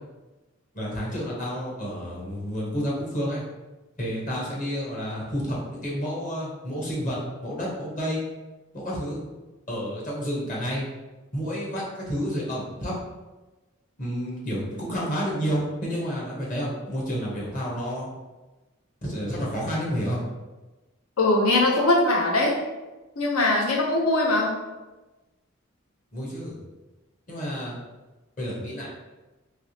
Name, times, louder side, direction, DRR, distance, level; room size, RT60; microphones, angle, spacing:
voice 1, 0.7-3.4 4.0-8.2 8.7-9.2 9.7-10.8 11.3-12.9 14.0-18.1 19.0-20.2 26.1-26.6 27.3-27.8 28.4-28.9, equal, 35° left, -5 dB, 0.9 m, -30 dB
voice 2, 21.2-22.6 23.2-24.5, left 2 dB, 80° left, -1 dB, 0.7 m, -21 dB
3.3 x 2.8 x 2.8 m, 1.1 s
head